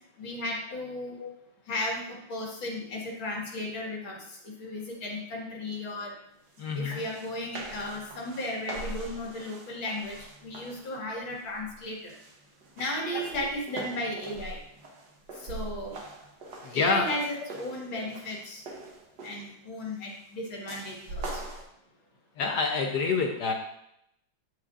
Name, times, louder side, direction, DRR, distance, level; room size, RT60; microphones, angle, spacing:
voice 1, 0.2-1.2 1.7-6.1 6.7-12.1 12.8-14.6 15.4-16.0 16.5-18.6 19.2-21.4, left 1 dB, 85° left, -2 dB, 2.6 m, -35 dB
voice 2, 6.6-7.0 13.1-13.5 14.3-14.4 16.6-17.2 17.9-18.0 22.4-23.5, left 4 dB, 65° left, 2 dB, 1.2 m, -28 dB
sound 1, 6.6-6.7 6.9-11.0 11.4-11.7 12.1-19.6 20.7-21.6, right 2 dB, 65° right, 1.6 m, -42 dB
9.2 x 7.8 x 2.5 m, 0.77 s
omnidirectional pair, 2.1 m